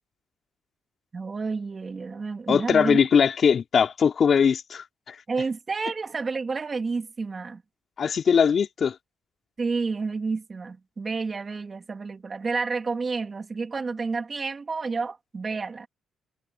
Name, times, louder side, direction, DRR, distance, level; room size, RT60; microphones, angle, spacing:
voice 1, 1.1-3.0 5.3-7.6 9.6-15.9, right 4 dB, 35° right, 2.4 m, -30 dB
voice 2, 2.5-5.2 8.0-9.0, left 6 dB, 50° left, 2.8 m, -21 dB
cardioid pair, 90°, 0 cm